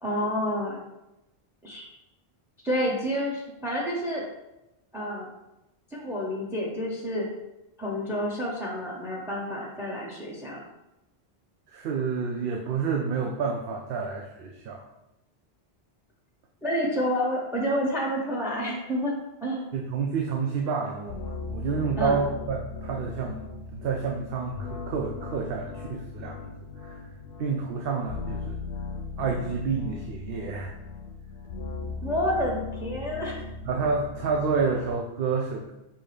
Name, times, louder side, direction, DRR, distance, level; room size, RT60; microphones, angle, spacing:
voice 1, 0.0-0.8 1.6-1.9 2.6-4.2 4.9-5.3 5.9-7.3 7.8-10.6 16.6-19.1 19.4-19.7 22.0-22.2 32.0-33.4, equal, 5° right, -2 dB, 0.7 m, -29 dB
voice 2, 11.7-14.8 19.7-21.2 21.5-26.4 26.8-27.0 27.4-28.6 29.2-30.7 33.7-35.7, right 5 dB, 70° right, 0 dB, 0.7 m, -29 dB
sound 1, 21.1-34.9, left 3 dB, 80° left, 0.8 m, -38 dB
5.5 x 2.7 x 3.3 m, 0.93 s
omnidirectional pair, 1.0 m